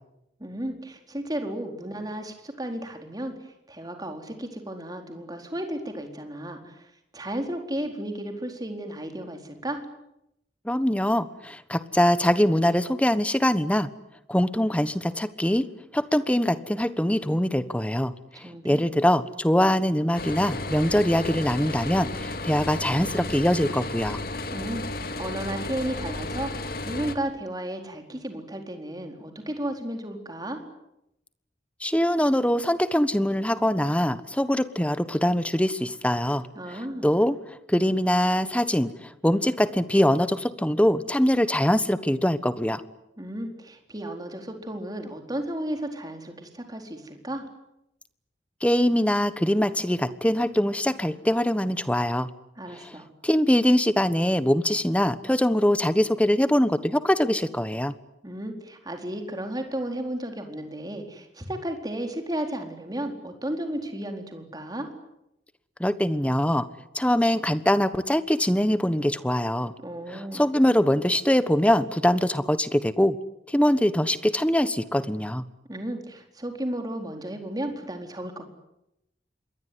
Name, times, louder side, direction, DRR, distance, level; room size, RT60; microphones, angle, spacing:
voice 1, 0.4-6.9 7.1-9.8 18.4-18.8 24.5-30.6 36.5-37.1 43.2-47.5 52.6-53.0 58.2-64.9 69.8-70.5 75.7-78.5, right 1 dB, 20° right, 4 dB, 4.4 m, -34 dB
voice 2, 10.6-13.9 14.3-15.7 15.9-24.2 31.8-37.4 37.7-42.8 48.6-52.3 52.8-52.9 53.2-57.9 65.8-66.6 66.9-69.7 70.1-73.2 73.5-75.4, equal, 5° left, 13 dB, 1.2 m, -23 dB
sound 1, 20.2-27.2, left 2 dB, 55° left, 2.5 m, -33 dB
27.0 x 22.5 x 9.6 m, 0.84 s
head